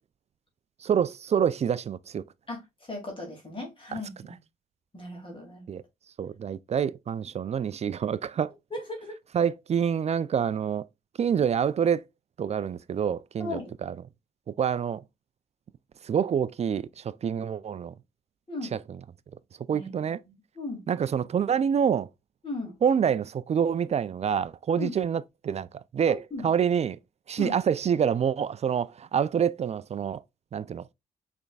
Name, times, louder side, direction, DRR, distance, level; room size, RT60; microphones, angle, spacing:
voice 1, 0.8-2.2 3.9-4.0 5.7-5.8 6.2-8.5 9.3-10.9 11.2-12.0 12.4-14.0 14.5-15.0 16.0-17.9 18.7-18.8 19.7-20.2 20.9-22.1 22.8-25.7 25.9-27.0 27.3-30.2 30.5-30.8, right 8 dB, 45° right, 0.4 m, -27 dB
voice 2, 2.9-4.4 4.9-5.6 8.7-9.1 13.4-13.7 18.5-18.7 19.7-19.9 20.6-20.8 22.4-22.7 24.8-24.9 26.0-26.4 27.4-27.6, left 2 dB, 35° left, 2.4 m, -36 dB
6.2 x 3.5 x 2.3 m
supercardioid pair, 50°, 15 cm